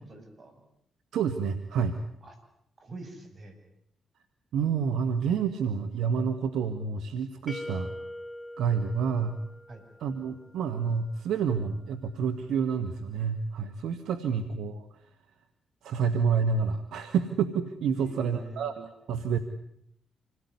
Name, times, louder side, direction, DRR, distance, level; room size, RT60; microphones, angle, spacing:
voice 1, 0.1-0.5 2.2-2.3 2.8-3.6 9.7-9.8 17.9-18.6, right 2 dB, 45° right, 6 dB, 7.6 m, -45 dB
voice 2, 1.1-2.0 4.5-7.9 8.6-9.4 10.0-15.1 15.8-19.4, right 6 dB, 75° right, 10 dB, 1.6 m, -29 dB
sound 1, 7.5-10.3, left 1 dB, 15° left, 2.3 m, -42 dB
27.0 x 18.0 x 9.7 m, 0.74 s
supercardioid pair, 55°, 0 cm